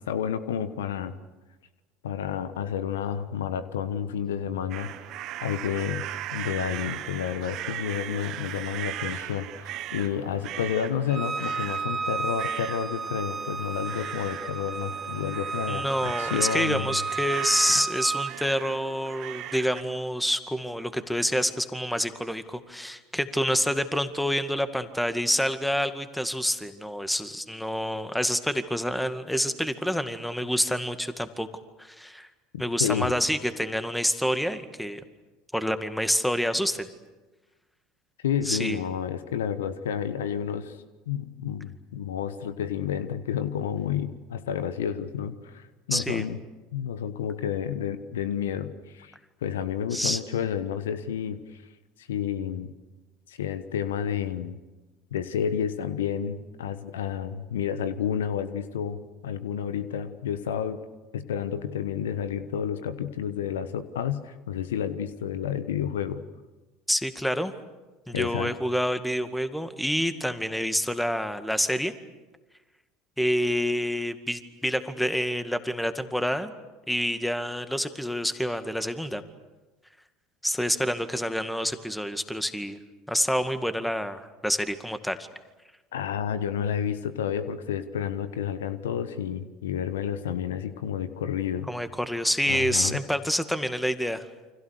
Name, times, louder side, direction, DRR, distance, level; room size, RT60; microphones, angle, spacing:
voice 1, 0.1-1.1 2.0-4.9 5.4-6.1 6.3-17.0 17.7-17.8 32.5-33.1 38.2-40.8 41.1-46.4 46.7-49.1 49.4-51.4 52.0-52.7 53.3-54.6 55.1-60.8 61.1-66.2 68.1-68.5 85.9-91.7 92.4-93.0, left 8 dB, 75° left, 13 dB, 1.2 m, -30 dB
sound 1, 4.7-19.8, right 13 dB, 55° right, 1.6 m, -38 dB
Bowed string instrument, 11.1-18.3, right 5 dB, 20° right, 2.9 m, -32 dB
voice 2, 15.7-31.5 31.8-32.3 32.6-35.0 35.5-36.9 38.5-38.8 45.9-46.2 49.9-50.2 66.9-67.5 68.1-71.9 73.2-76.5 76.9-79.2 80.4-82.8 83.1-85.3 91.7-94.3, equal, 5° left, 10 dB, 2.1 m, -27 dB
29.5 x 25.5 x 6.6 m, 1.2 s
hypercardioid pair, 70°, 0 cm